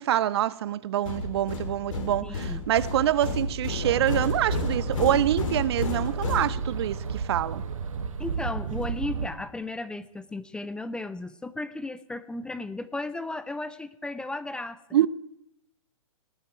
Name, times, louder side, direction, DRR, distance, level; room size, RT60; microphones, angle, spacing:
voice 1, 0.0-7.6 14.9-15.1, right 12 dB, 50° right, 0.5 m, -26 dB
sound 1, 1.1-7.1, left 2 dB, 65° left, 3.2 m, -31 dB
voice 2, 2.2-2.6 8.2-15.1, left 2 dB, 5° left, 0.5 m, -35 dB
sound 2, 3.8-9.3, right 6 dB, 70° right, 1.4 m, -33 dB
18.5 x 8.0 x 9.0 m
figure-of-eight pair, 120°, 18 cm